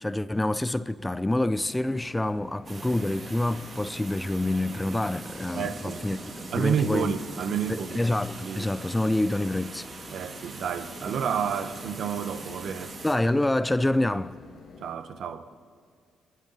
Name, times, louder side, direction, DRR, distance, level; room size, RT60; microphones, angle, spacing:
voice 1, 0.0-6.2 6.5-7.1 7.7-9.9 13.0-14.3, left 1 dB, 10° left, 0.4 m, -27 dB
sound 1, 1.6-14.9, left 5 dB, 55° left, 1.8 m, -49 dB
sound 2, 2.6-13.1, right 3 dB, 40° right, 3.0 m, -42 dB
voice 2, 5.5-8.0 8.4-8.7 10.1-12.9 14.8-15.5, right 7 dB, 65° right, 1.1 m, -30 dB
29.0 x 11.0 x 4.1 m
cardioid pair, 90°, 0 cm